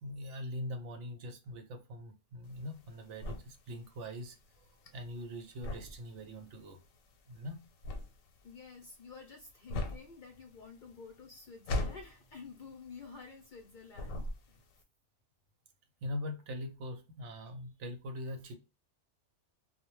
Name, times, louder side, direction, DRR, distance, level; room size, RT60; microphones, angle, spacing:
voice 1, 0.0-4.4 4.9-6.8 7.3-7.6 16.0-18.5, left 1 dB, 70° right, 6 dB, 0.9 m, -42 dB
sound 1, 2.4-13.6 13.9-14.8, left 1 dB, 80° left, 1.0 m, -40 dB
voice 2, 8.4-14.6, left 5 dB, 55° left, 1 dB, 0.6 m, -51 dB
2.2 x 2.1 x 2.9 m, 0.29 s
omnidirectional pair, 1.4 m